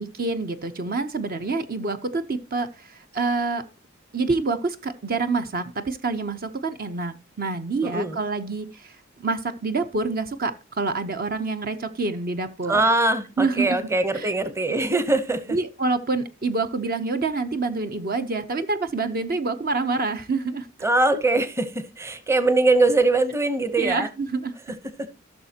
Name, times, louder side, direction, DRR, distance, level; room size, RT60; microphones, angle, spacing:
voice 1, 0.0-3.6 4.1-12.8 13.4-13.8 14.1-14.3 15.5-20.7 23.8-24.5, right 3 dB, 50° right, 0.7 m, -27 dB
voice 2, 7.8-8.2 12.7-15.6 20.8-24.1 25.0-25.1, right 2 dB, 15° right, 0.8 m, -22 dB
15.5 x 6.5 x 2.8 m
head